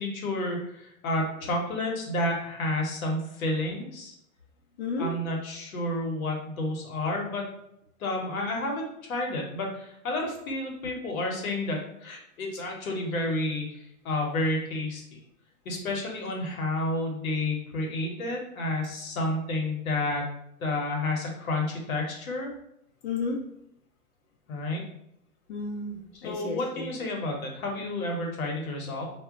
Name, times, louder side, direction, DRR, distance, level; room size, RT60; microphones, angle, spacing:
voice 1, 0.0-4.1 5.0-7.5 8.0-15.0 15.6-20.2 20.6-22.5 24.5-24.8 26.1-29.1, left 2 dB, 75° left, 1 dB, 1.0 m, -30 dB
voice 2, 4.8-5.1 23.0-23.4 25.5-26.9, left 3 dB, 55° left, -3 dB, 0.6 m, -32 dB
2.2 x 2.0 x 3.6 m, 0.75 s
hypercardioid pair, 145°, 42 cm